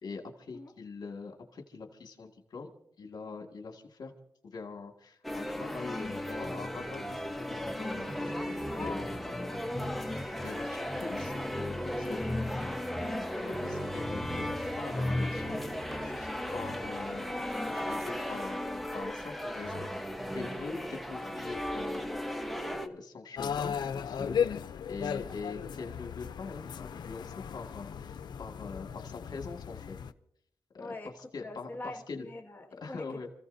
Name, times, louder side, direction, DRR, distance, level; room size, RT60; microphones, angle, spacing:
voice 1, 0.0-2.7 3.0-4.1 4.4-7.2 7.5-9.0 10.4-12.2 13.0-15.6 16.0-23.8 24.0-24.4 24.9-30.0 30.7-32.3 32.8-33.3, left 4 dB, 70° left, 2 dB, 2.1 m, -43 dB
sound 1, 5.2-22.9, left 1 dB, ahead, 1.1 m, -35 dB
voice 2, 8.7-10.3 30.8-31.1 31.4-33.0, left 2 dB, 25° left, -1 dB, 1.9 m, -44 dB
sound 2, 23.4-30.1, left 7 dB, 85° left, 0.5 m, -36 dB
29.5 x 15.5 x 2.7 m, 0.69 s
wide cardioid pair, 85°, 7 cm